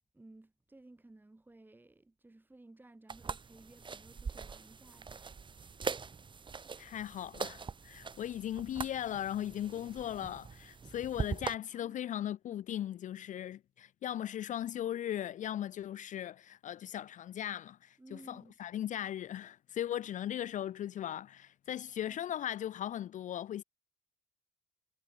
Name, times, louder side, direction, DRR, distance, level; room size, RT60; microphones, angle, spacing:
voice 1, 0.1-5.8 11.7-12.0 18.0-18.5 22.1-22.2, right 2 dB, 10° right, 3.7 m, -57 dB
sound 1, 3.1-11.5, right 5 dB, 30° right, 3.1 m, -42 dB
voice 2, 6.8-23.6, left 11 dB, 50° left, 0.5 m, -38 dB
cardioid pair, 110°, 17 cm